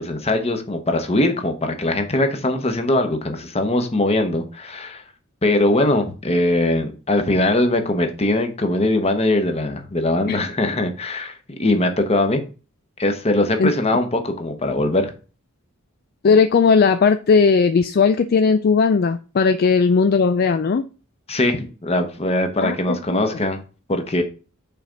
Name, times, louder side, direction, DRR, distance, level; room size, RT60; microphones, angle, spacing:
voice 1, 0.0-5.0 5.4-12.4 13.0-15.1 21.3-23.6 23.9-24.2, left 1 dB, 30° left, 6 dB, 1.1 m, -21 dB
voice 2, 13.6-14.0 16.2-20.8 22.6-23.2, left 5 dB, 50° left, 9 dB, 0.4 m, -17 dB
5.7 x 4.3 x 5.1 m, 0.35 s
head